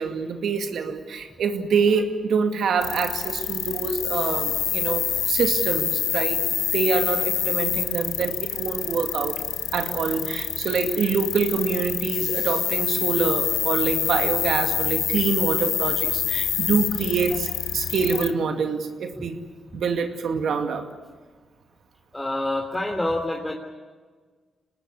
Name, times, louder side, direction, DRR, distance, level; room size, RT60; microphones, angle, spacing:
voice 1, 0.0-9.4 9.7-19.4 19.7-20.9, right 5 dB, 75° right, 6 dB, 2.3 m, -25 dB
sound 1, 2.8-18.3, left 9 dB, 80° left, 1.0 m, -26 dB
voice 2, 22.1-23.5, left 1 dB, 15° left, 1 dB, 3.2 m, -27 dB
24.5 x 19.5 x 9.7 m, 1.5 s
supercardioid pair, 50°, 0 cm